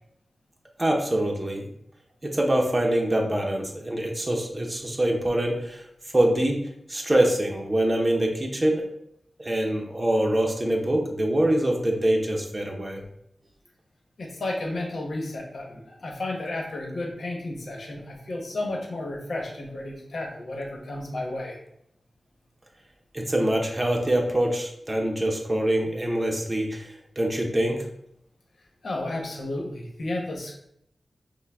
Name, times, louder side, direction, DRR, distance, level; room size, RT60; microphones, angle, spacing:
voice 1, 0.8-1.7 2.2-5.8 6.1-8.8 9.4-13.0 23.1-27.8, right 1 dB, 25° right, 1 dB, 0.7 m, -24 dB
voice 2, 14.2-21.6 28.8-30.5, left 2 dB, 70° left, 0 dB, 1.1 m, -32 dB
5.6 x 2.2 x 3.4 m, 0.75 s
wide cardioid pair, 70°, 0 cm